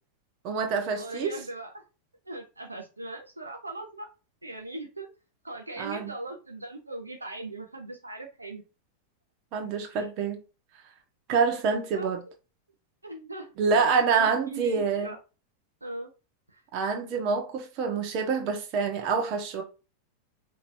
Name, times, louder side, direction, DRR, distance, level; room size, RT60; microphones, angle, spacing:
voice 1, 0.4-1.4 5.8-6.1 9.5-10.4 11.3-12.2 13.6-15.1 16.7-19.6, right 5 dB, 40° right, 1.2 m, -26 dB
voice 2, 1.0-1.7 2.2-4.1 4.4-5.1 5.4-8.6 10.0-10.1 11.9-12.3 13.0-13.8 14.1-15.2 15.8-16.1 16.5-16.6, right 2 dB, 80° right, 0.7 m, -39 dB
5.7 x 3.0 x 2.6 m
figure-of-eight pair, 90°, 0 cm